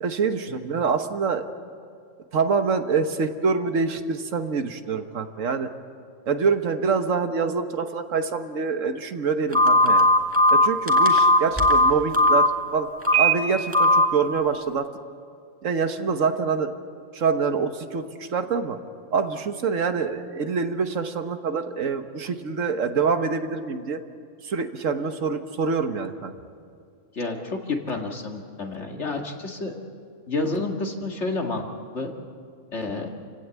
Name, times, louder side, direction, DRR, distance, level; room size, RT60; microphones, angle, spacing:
voice 1, 0.0-1.5 2.3-5.7 6.3-10.1 10.5-12.9 13.2-14.9 15.6-16.7 17.1-18.8 19.1-24.0 24.4-26.3, right 5 dB, 85° right, 7 dB, 1.6 m, -25 dB
Telephone, 9.5-12.5 13.0-13.3 13.7-14.0, left 1 dB, 10° right, 2.0 m, -17 dB
voice 2, 27.1-29.7 30.3-31.7 31.9-32.1 32.7-33.1, left 3 dB, 65° left, 2 dB, 2.4 m, -29 dB
29.0 x 16.5 x 8.3 m, 2.3 s
omnidirectional pair, 1.3 m